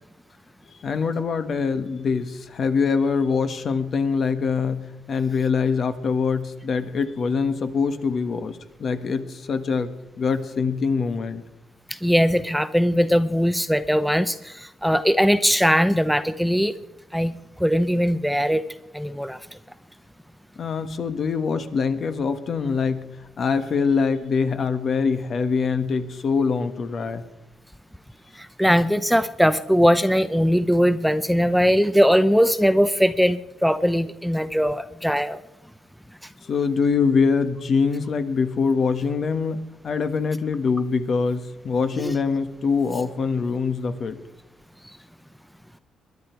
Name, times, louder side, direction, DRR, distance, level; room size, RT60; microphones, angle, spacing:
voice 1, 0.8-9.9 10.2-11.4 20.6-23.0 23.4-27.2 36.4-44.2, left 5 dB, 50° left, 9 dB, 1.5 m, -24 dB
voice 2, 11.9-16.8 17.1-17.3 17.6-18.6 18.9-19.4 28.4-35.4 42.0-42.1, equal, ahead, 12 dB, 0.6 m, -20 dB
21.5 x 11.0 x 4.6 m, 0.92 s
cardioid pair, 95°, 0 cm